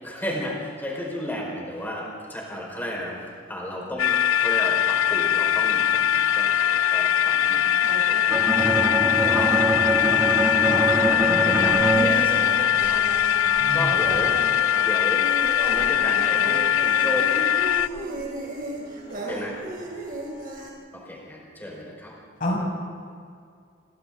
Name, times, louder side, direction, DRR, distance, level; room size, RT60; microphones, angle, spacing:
voice 1, 0.0-3.1 3.5-7.7 8.1-8.4 9.3-9.6 11.2-12.3 12.6-13.2 13.7-14.4 14.8-15.2 15.6-17.4 19.3-19.6 20.9-22.1, equal, 10° left, -2 dB, 4.8 m, -33 dB
sound 1, 4.0-17.9, left 10 dB, 85° left, 0.4 m, -21 dB
sound 2, 7.8-20.7, right 1 dB, 45° right, 4.0 m, -36 dB
Bowed string instrument, 8.3-13.2, right 1 dB, 10° right, 1.1 m, -25 dB
voice 2, 10.6-12.5 12.7-12.9 13.6-14.0 14.4-14.5 22.4-22.6, left 1 dB, 45° left, -2 dB, 6.6 m, -30 dB
voice 3, 17.4-18.5 18.8-19.4 19.7-19.9 20.6-20.7, equal, 25° left, 2 dB, 3.4 m, -47 dB
28.0 x 24.0 x 3.9 m, 2.3 s
head